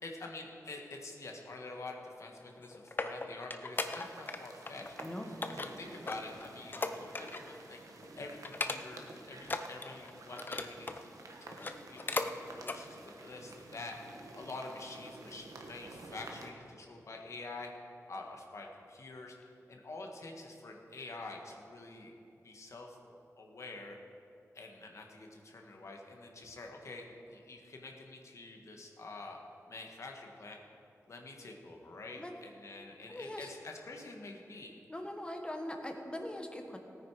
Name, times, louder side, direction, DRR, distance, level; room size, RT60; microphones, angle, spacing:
voice 1, 0.0-4.9 5.5-7.8 8.2-11.0 11.4-12.3 12.6-14.0 14.3-17.7 18.1-19.3 19.7-22.1 22.4-24.0 24.5-29.4 29.7-30.6 31.1-34.8, left 3 dB, 60° left, 1 dB, 1.5 m, -47 dB
sound 1, 2.4-4.4 4.7-5.0 5.4-7.6 7.9-8.1 8.4-9.1 9.4-11.0 11.5-12.3 12.6-12.8 13.3-13.4, left 3 dB, 35° left, 0.6 m, -38 dB
sound 2, 3.7-16.5, right 2 dB, 75° right, 1.3 m, -52 dB
voice 2, 5.0-5.3 32.1-32.3 33.1-33.5 34.9-36.8, left 1 dB, 15° left, 4 dB, 1.4 m, -41 dB
17.5 x 9.5 x 4.8 m, 2.7 s
wide cardioid pair, 115°, 6 cm